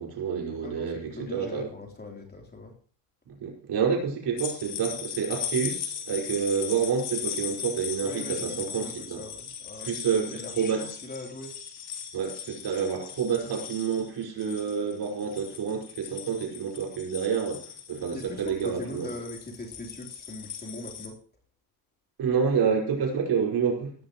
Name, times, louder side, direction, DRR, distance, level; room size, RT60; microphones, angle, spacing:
voice 1, 0.0-1.0 1.3-1.7 3.3-9.2 9.8-10.8 12.1-19.1 22.2-23.9, right 6 dB, 55° right, 0 dB, 5.6 m, -28 dB
voice 2, 0.6-2.7 8.0-11.6 18.1-21.2, left 2 dB, 20° left, 1 dB, 3.6 m, -41 dB
sound 1, 4.4-21.1, left 8 dB, 60° left, 3.1 m, -38 dB
17.5 x 13.5 x 3.1 m, 0.41 s
supercardioid pair, 95°, 45 cm